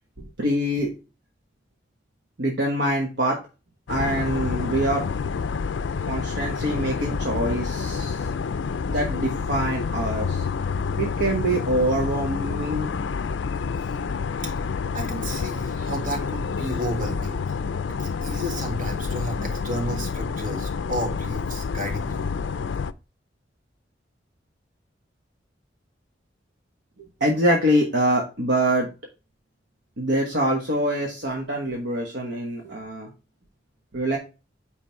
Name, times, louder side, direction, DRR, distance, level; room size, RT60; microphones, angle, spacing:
voice 1, 0.2-0.9 2.4-3.4 3.9-5.1 6.1-8.3 8.9-10.5 11.0-12.9 27.2-28.9 30.0-33.1 33.9-34.2, right 1 dB, 65° right, 0 dB, 1.3 m, -24 dB
sound 1, 3.9-22.9, left 5 dB, 75° left, 0.4 m, -28 dB
voice 2, 14.9-17.4 17.9-22.3, equal, 50° right, 3 dB, 1.9 m, -32 dB
8.9 x 3.3 x 4.4 m, 0.30 s
head